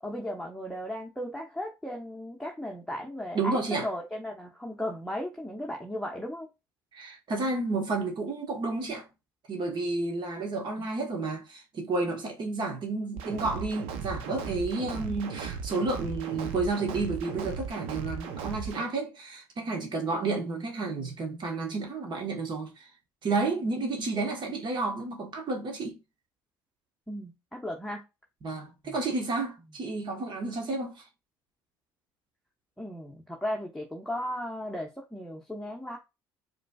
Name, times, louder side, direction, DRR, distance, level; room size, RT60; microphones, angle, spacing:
voice 1, 0.0-6.5 27.1-28.0 28.8-28.9 32.8-36.0, equal, 5° left, 1.0 m, -36 dB
voice 2, 3.3-3.9 6.9-9.1 9.5-22.7 23.2-26.0 28.4-30.9, right 3 dB, 45° right, 1.4 m, -31 dB
sound 1, 13.2-18.8, right 6 dB, 75° right, 0.8 m, -37 dB
5.0 x 3.2 x 2.3 m
hypercardioid pair, 65°, 10 cm